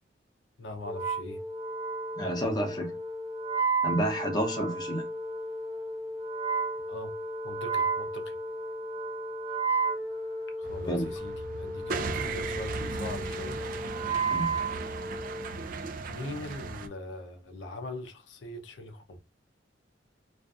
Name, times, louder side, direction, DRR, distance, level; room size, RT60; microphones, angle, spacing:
voice 1, 0.6-1.4 6.9-7.1 7.4-8.3 10.6-13.7 16.1-19.2, left 2 dB, 80° left, 0.5 m, -41 dB
Wind instrument woodwind instrument, 0.8-15.6, right 3 dB, 30° right, 1.0 m, -33 dB
voice 2, 2.2-3.0 3.8-5.0 10.9-11.1 14.3-14.5, equal, 25° left, 0.6 m, -30 dB
sound 1, 10.6-16.9, right 4 dB, 50° right, 0.3 m, -37 dB
2.5 x 2.4 x 2.3 m
head